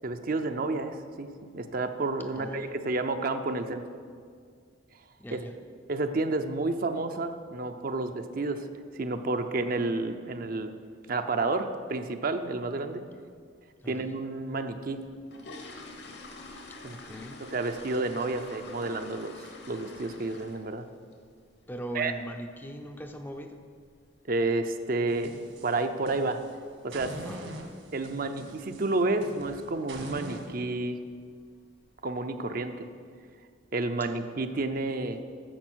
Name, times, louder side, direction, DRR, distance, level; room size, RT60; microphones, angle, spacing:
voice 1, 0.0-3.8 5.3-5.4 5.9-8.7 9.0-10.7 11.1-13.0 13.9-15.0 16.8-17.0 17.4-19.3 19.7-20.8 21.9-22.1 24.3-25.4 25.6-26.4 26.8-27.2 27.9-31.0 32.0-32.9 33.7-35.2, right 2 dB, 45° right, 7 dB, 0.5 m, -30 dB
voice 2, 2.3-2.8 5.2-5.6 13.8-14.1 16.7-17.4 21.7-23.6 27.2-27.6, equal, 10° left, 5 dB, 0.5 m, -40 dB
sound 1, 14.9-20.8 21.1-21.4 21.8-21.9 22.2-22.4 22.7-23.0 23.2-23.3 23.9-24.0 24.3-24.4 24.9-25.2 25.5-25.6 26.0-26.2 26.5-26.6 27.1-27.2 27.8-28.1 28.4-28.7 29.1-29.2 29.6-29.7 30.5-30.6 31.0-31.5 32.0-32.1, left 2 dB, 55° left, 1.1 m, -47 dB
sound 2, 25.1-26.5 26.9-30.5, right 1 dB, 70° right, 1.6 m, -43 dB
10.0 x 7.0 x 6.2 m, 2.1 s
head